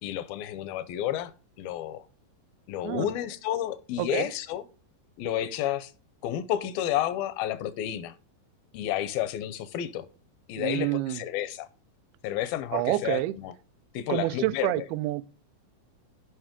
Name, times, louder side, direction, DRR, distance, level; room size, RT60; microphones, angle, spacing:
voice 1, 0.0-1.3 1.6-2.1 2.7-4.6 5.2-5.9 6.2-8.1 8.7-10.1 10.5-11.7 12.2-13.5 13.9-14.8, left 12 dB, 80° left, 2.2 m, -31 dB
voice 2, 4.0-4.3 10.6-11.2 12.7-13.4 14.1-15.2, right 16 dB, 85° right, 2.2 m, -28 dB
14.5 x 5.5 x 3.6 m
omnidirectional pair, 4.9 m